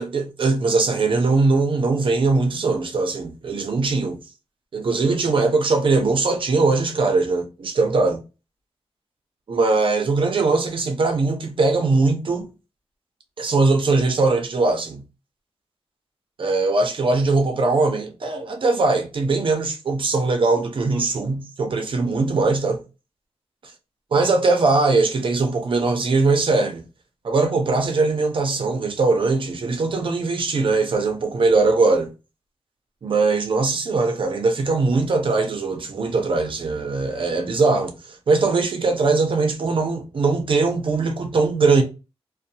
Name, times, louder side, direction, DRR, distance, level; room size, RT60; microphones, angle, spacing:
voice 1, 0.0-4.2 4.7-8.2 9.5-12.5 13.4-15.0 16.4-22.8 24.1-26.8 27.2-32.1 33.0-41.8, right 3 dB, 55° right, 0.5 m, -21 dB
2.6 x 2.0 x 2.7 m
wide cardioid pair, 160°, 10 cm